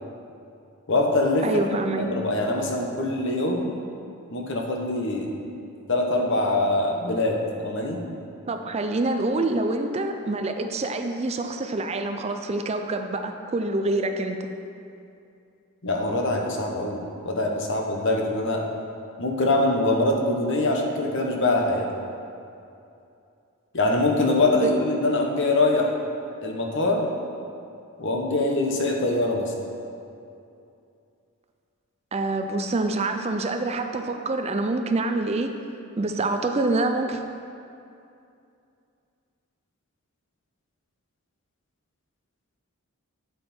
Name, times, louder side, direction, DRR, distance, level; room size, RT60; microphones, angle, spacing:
voice 1, 0.9-1.5 1.9-3.7 4.3-5.4 5.9-8.0 15.8-18.6 19.2-21.9 23.7-25.9 26.4-27.0 28.0-29.5, left 2 dB, 55° left, 1 dB, 1.1 m, -23 dB
voice 2, 1.4-2.1 8.5-14.5 24.6-24.7 32.1-35.5 36.0-37.2, right 2 dB, 30° right, 6 dB, 0.4 m, -26 dB
9.7 x 7.5 x 4.4 m, 2.6 s
head